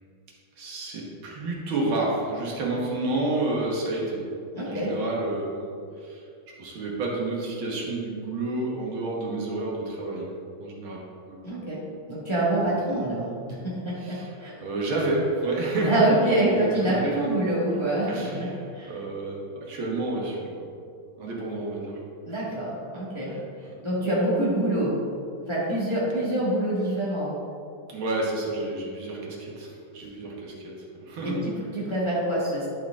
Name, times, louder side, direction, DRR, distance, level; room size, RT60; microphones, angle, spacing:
voice 1, 0.6-4.2 4.6-6.2 6.6-10.3 10.6-11.0 11.3-11.4 14.0-14.3 14.6-17.3 17.7-20.6 21.2-22.0 23.3-23.7 27.9-31.4, right 2 dB, 75° right, -3 dB, 2.1 m, -30 dB
voice 2, 4.5-4.9 11.4-11.8 12.1-14.5 15.9-18.5 18.7-19.0 22.3-23.3 23.8-25.0 25.5-27.4 31.2-32.7, right 1 dB, 15° left, -7 dB, 1.2 m, -26 dB
11.0 x 4.5 x 3.6 m, 2.4 s
omnidirectional pair, 2.3 m